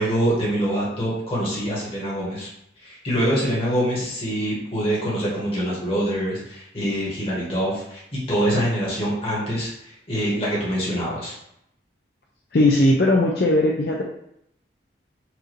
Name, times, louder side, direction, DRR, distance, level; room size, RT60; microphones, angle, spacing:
voice 1, 0.0-2.5 2.8-11.3, equal, 30° left, -6 dB, 1.4 m, -25 dB
voice 2, 12.5-14.0, left 1 dB, 55° left, -2 dB, 0.5 m, -18 dB
4.6 x 2.6 x 3.1 m, 0.76 s
head